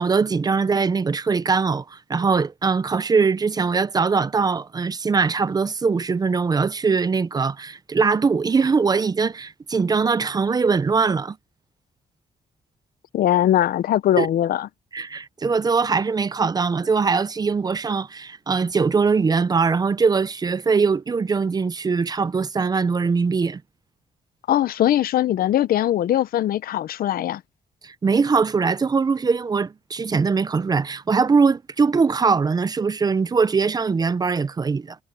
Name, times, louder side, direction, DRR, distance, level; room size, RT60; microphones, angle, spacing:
voice 1, 0.0-11.4 14.2-14.3 14.9-23.6 27.8-35.0, right 5 dB, 25° right, 0.6 m, -21 dB
voice 2, 13.1-14.7 24.5-27.4, left 12 dB, 70° left, 0.6 m, -21 dB
cardioid pair, 140°, 16 cm